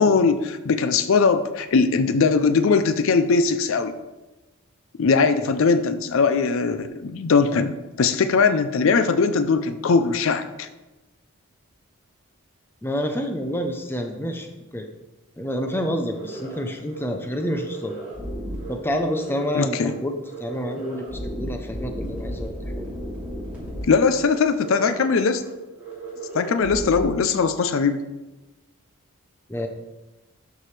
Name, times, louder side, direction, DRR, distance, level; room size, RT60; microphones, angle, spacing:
voice 1, 0.0-3.9 5.0-10.7 19.5-19.9 23.9-25.4 26.3-28.0, left 5 dB, 60° left, 10 dB, 0.4 m, -20 dB
voice 2, 12.8-14.5 14.7-14.9 15.4-18.0 18.7-22.9 29.5-29.7, equal, 10° left, 4 dB, 0.6 m, -28 dB
sound 1, 15.6-15.8 16.1-16.6 16.9-17.0 17.3-18.7 19.0-19.5 19.8-19.9 20.2-23.8 24.1-24.3 24.6-25.1 25.3-25.5 25.8-27.0, right 1 dB, 5° right, 2.7 m, -34 dB
12.5 x 4.7 x 3.3 m, 1.1 s
head